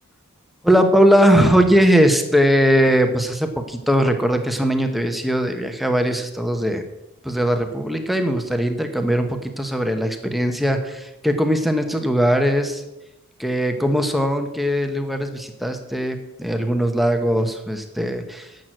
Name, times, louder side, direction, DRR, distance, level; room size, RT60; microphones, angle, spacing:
voice 1, 0.6-6.8 7.2-12.8 13.4-18.5, equal, ahead, 6 dB, 1.1 m, -20 dB
11.0 x 7.8 x 7.7 m, 0.97 s
head